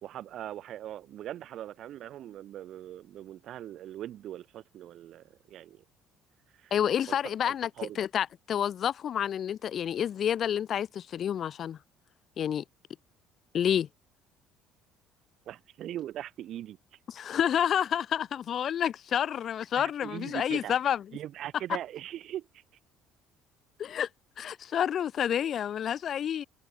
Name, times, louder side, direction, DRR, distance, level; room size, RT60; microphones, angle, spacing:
voice 1, 0.0-5.8 6.5-6.7 7.1-8.0 15.5-16.8 19.8-20.7 21.1-22.6, right 12 dB, 60° right, 2.4 m, -41 dB
voice 2, 6.7-11.8 12.4-12.6 13.5-13.9 17.1-21.0 23.8-24.1 24.4-26.4, left 9 dB, 50° left, 0.5 m, -29 dB
hypercardioid pair, 60°, 0 cm